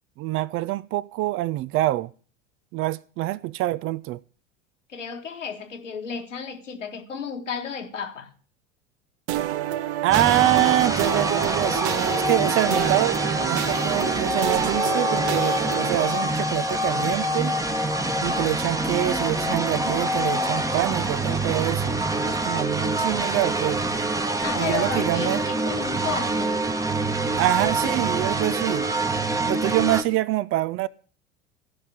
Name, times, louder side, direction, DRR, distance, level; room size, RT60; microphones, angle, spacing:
voice 1, 0.2-2.1 2.7-4.2 10.0-13.2 13.5-17.6 18.2-23.8 24.6-25.4 27.4-28.9 29.4-30.9, right 16 dB, 35° right, 0.5 m, -25 dB
voice 2, 4.9-8.3 24.4-26.6, left 6 dB, 80° left, 1.8 m, -33 dB
sound 1, 9.3-16.1, right 12 dB, 60° right, 0.8 m, -28 dB
sound 2, 10.1-30.0, right 1 dB, 10° right, 1.2 m, -25 dB
15.0 x 5.8 x 8.4 m
figure-of-eight pair, 75°, 37 cm